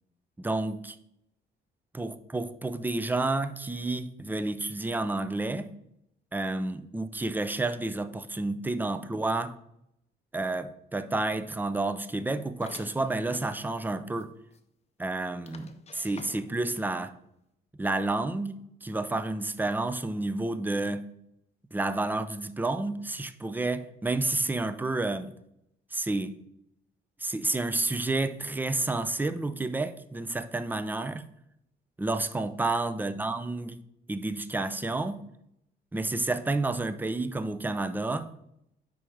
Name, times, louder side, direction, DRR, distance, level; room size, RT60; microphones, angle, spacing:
voice 1, 0.4-1.0 1.9-5.7 6.3-9.5 10.3-14.3 15.0-17.1 17.8-21.0 21.7-25.3 25.9-26.4 27.2-31.3 32.0-33.8 34.1-35.2 35.9-38.3, right 2 dB, 10° right, 12 dB, 0.5 m, -30 dB
sound 1, 12.6-13.6 14.2-14.3 14.5-14.6 15.5-16.7, left 5 dB, 35° left, 0.6 m, -48 dB
5.4 x 4.4 x 4.9 m, 0.78 s
cardioid pair, 90°, 20 cm